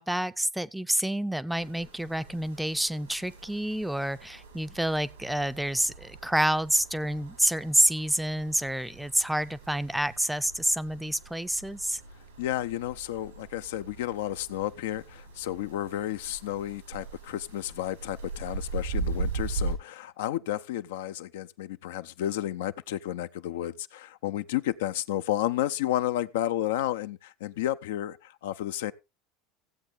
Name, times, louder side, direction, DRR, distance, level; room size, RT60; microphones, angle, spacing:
voice 1, 0.0-12.0, right 1 dB, 5° right, 0.5 m, -28 dB
sound 1, 1.5-19.7, right 3 dB, 90° right, 4.4 m, -40 dB
voice 2, 12.4-28.9, left 13 dB, 70° left, 0.5 m, -32 dB
16.0 x 7.9 x 3.4 m
hypercardioid pair, 80°, 0 cm